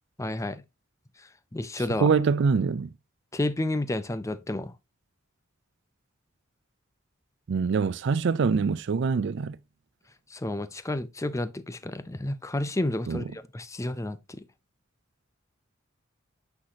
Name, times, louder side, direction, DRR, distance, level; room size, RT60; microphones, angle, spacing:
voice 1, 0.2-0.6 1.5-2.1 3.3-4.7 10.3-14.4, left 1 dB, 15° left, 0.5 m, -31 dB
voice 2, 2.0-2.9 7.5-9.6 13.1-13.2, right 5 dB, 65° right, 0.4 m, -24 dB
8.7 x 5.8 x 2.8 m
head